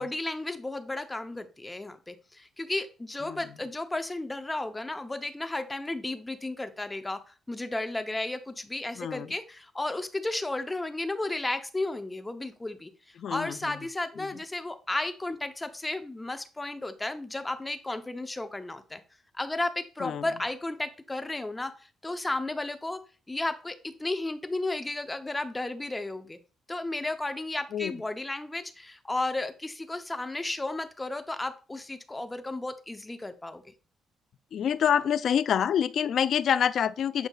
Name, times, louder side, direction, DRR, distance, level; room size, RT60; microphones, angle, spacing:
voice 1, 0.0-19.0 19.4-21.7 22.0-23.0 23.3-26.4 26.7-33.7, left 2 dB, 15° left, 0.7 m, -33 dB
voice 2, 9.0-9.3 13.2-13.7 20.0-20.2 27.7-28.0 34.5-37.3, left 8 dB, 65° left, 0.3 m, -26 dB
8.1 x 4.9 x 2.3 m
cardioid pair, 90°, 0 cm